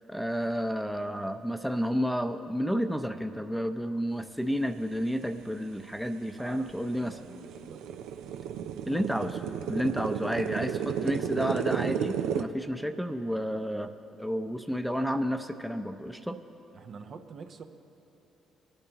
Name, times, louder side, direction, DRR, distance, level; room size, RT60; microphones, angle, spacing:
voice 1, 0.1-7.2 8.9-9.4 9.7-13.9 14.2-16.4, equal, ahead, 7 dB, 0.7 m, -31 dB
sound 1, 5.9-6.0 6.5-12.4, right 8 dB, 75° right, 0.5 m, -33 dB
voice 2, 6.4-7.8 16.7-17.6, right 5 dB, 55° right, 6 dB, 0.8 m, -46 dB
23.5 x 8.5 x 3.0 m, 3.0 s
hypercardioid pair, 55°, 0 cm